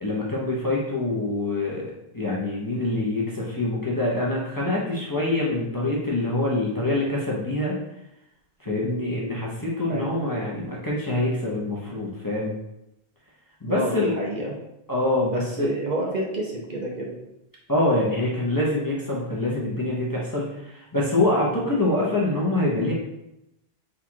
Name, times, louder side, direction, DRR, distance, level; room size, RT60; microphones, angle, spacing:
voice 1, 0.0-7.8 8.6-12.6 13.6-14.1 14.9-15.7 17.7-22.9, left 2 dB, 25° left, -5 dB, 0.6 m, -25 dB
voice 2, 13.7-14.5 15.3-17.1 21.5-21.7, right 1 dB, 50° right, -2 dB, 0.7 m, -29 dB
3.7 x 2.4 x 4.5 m, 0.86 s
omnidirectional pair, 1.1 m